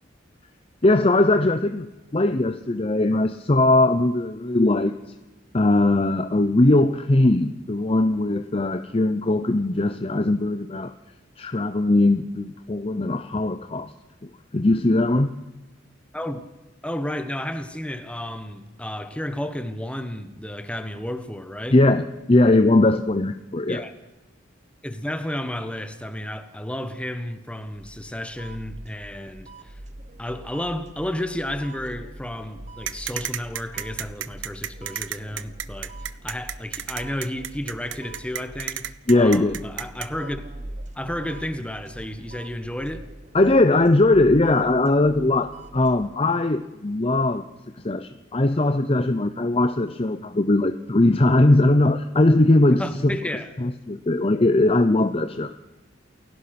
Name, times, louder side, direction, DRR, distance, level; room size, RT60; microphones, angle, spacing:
voice 1, 0.8-1.9 2.1-4.9 5.5-10.9 11.4-13.9 14.2-15.3 21.7-23.8 39.1-39.6 43.3-47.5 47.8-53.2 53.6-55.5, left 2 dB, 30° left, 0.7 m, -20 dB
voice 2, 16.1-16.4 16.8-21.8 23.7-23.9 24.8-29.7 30.2-40.4 40.9-43.0 52.8-53.5, left 1 dB, 5° left, 1.3 m, -32 dB
sound 1, 27.6-46.1, right 1 dB, 35° right, 1.0 m, -43 dB
sound 2, 32.9-40.1, right 11 dB, 70° right, 0.9 m, -31 dB
28.5 x 16.5 x 6.0 m
head